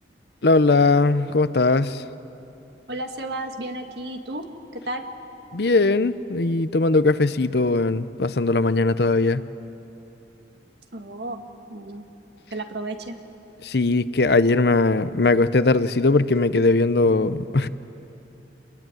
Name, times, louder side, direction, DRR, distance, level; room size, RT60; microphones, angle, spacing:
voice 1, 0.4-2.0 5.5-9.4 13.6-17.7, left 3 dB, 60° left, 14 dB, 0.7 m, -20 dB
voice 2, 2.9-4.5 4.7-5.0 10.9-11.4 11.7-12.0 12.5-13.2, right 1 dB, 65° right, 5 dB, 1.9 m, -32 dB
27.5 x 21.0 x 9.2 m, 2.9 s
head